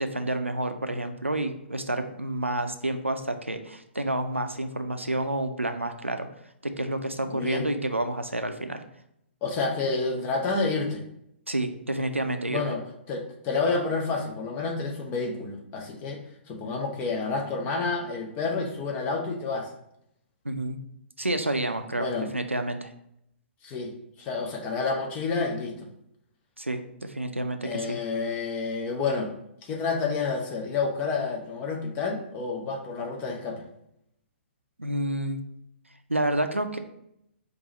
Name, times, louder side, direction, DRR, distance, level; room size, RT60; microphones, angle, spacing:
voice 1, 0.0-6.3 6.6-8.8 11.5-12.7 20.4-20.8 21.2-22.9 26.6-28.0 34.8-35.4 36.1-36.8, right 1 dB, 90° right, 7 dB, 0.5 m, -29 dB
voice 2, 7.3-7.7 9.4-11.0 12.5-12.8 13.1-16.2 16.5-19.7 22.0-22.3 23.6-23.9 24.2-25.9 27.6-29.3 29.6-33.6, left 4 dB, 25° left, 1 dB, 0.7 m, -29 dB
4.7 x 2.6 x 4.0 m, 0.77 s
figure-of-eight pair, 120°, 7 cm